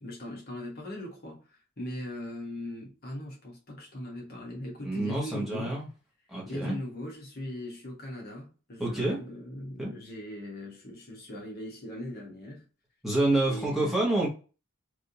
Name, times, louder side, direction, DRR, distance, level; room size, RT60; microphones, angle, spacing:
voice 1, 0.0-5.8 6.4-12.6 13.4-14.0, left 1 dB, 45° left, 1.2 m, -40 dB
voice 2, 4.8-5.9 6.3-6.7 8.8-9.2 9.8-9.9 13.0-14.3, right 2 dB, ahead, 1.1 m, -27 dB
3.3 x 2.7 x 2.7 m
head